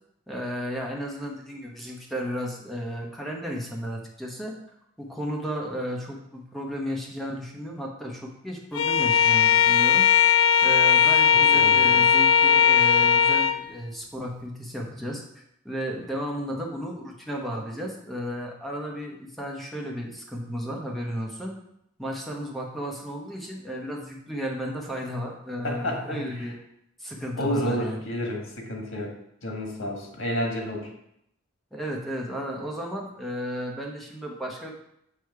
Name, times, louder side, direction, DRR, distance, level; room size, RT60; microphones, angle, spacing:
voice 1, 0.3-4.5 5.0-10.1 10.6-15.2 15.6-21.5 22.0-26.6 27.0-28.0 31.7-34.7, equal, ahead, -2 dB, 0.9 m, -33 dB
Bowed string instrument, 8.7-13.6, left 7 dB, 65° left, 0.3 m, -18 dB
voice 2, 11.3-12.0 25.6-26.5 27.4-29.1 29.4-30.9, equal, 90° left, 1 dB, 1.4 m, -30 dB
6.6 x 3.0 x 4.6 m, 0.76 s
head